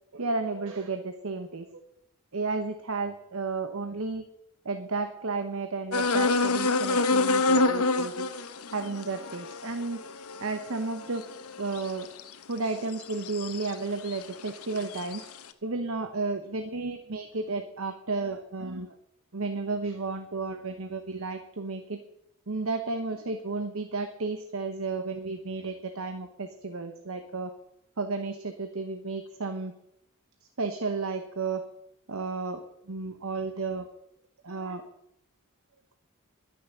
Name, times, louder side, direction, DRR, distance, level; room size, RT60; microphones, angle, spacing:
voice 1, 0.1-1.8 2.3-4.2 4.6-8.3 8.7-10.0 10.4-11.2 11.6-12.1 12.5-15.3 15.6-19.0 19.3-22.0 22.5-27.5 28.0-29.7 30.6-31.6 32.1-33.9 34.4-34.8, right 3 dB, 65° right, 8 dB, 1.0 m, -33 dB
sound 1, 5.9-12.3 12.9-13.7 14.1-15.2, left 3 dB, 90° left, 1.0 m, -27 dB
11.5 x 10.5 x 6.8 m, 0.80 s
head